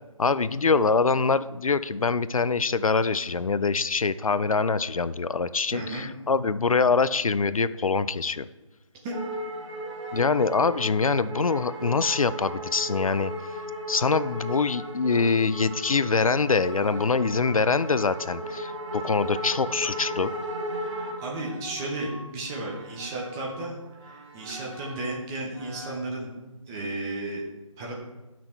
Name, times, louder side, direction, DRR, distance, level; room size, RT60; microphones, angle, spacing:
voice 1, 0.2-8.5 10.1-13.3 13.9-20.3, left 4 dB, 75° left, 15 dB, 0.5 m, -24 dB
voice 2, 5.7-6.1 9.0-9.1 20.8-26.3 26.7-27.4 27.8-27.9, right 2 dB, 5° right, -2 dB, 0.5 m, -34 dB
sound 1, 9.1-23.7 24.0-25.2 25.5-26.0, equal, 60° right, 3.0 m, -36 dB
10.0 x 6.1 x 4.4 m, 1.1 s
figure-of-eight pair, 155°, 18 cm